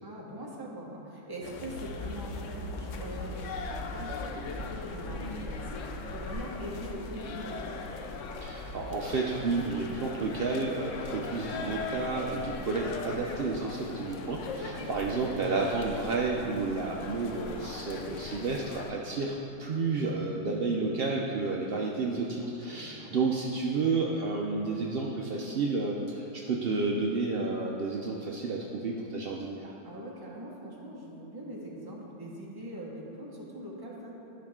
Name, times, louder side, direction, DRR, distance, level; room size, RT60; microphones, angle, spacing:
voice 1, 0.0-7.8 14.6-14.9 22.4-23.2 29.8-34.1, right 1 dB, 15° right, -4 dB, 1.1 m, -42 dB
sound 1, 1.4-18.9, left 4 dB, 65° left, 0.8 m, -40 dB
Accelerating revving vroom, 1.7-8.9, left 1 dB, 40° left, 1.0 m, -42 dB
voice 2, 8.4-29.7, right 3 dB, 65° right, -1 dB, 0.5 m, -31 dB
12.5 x 5.7 x 3.7 m, 3.0 s
omnidirectional pair, 1.7 m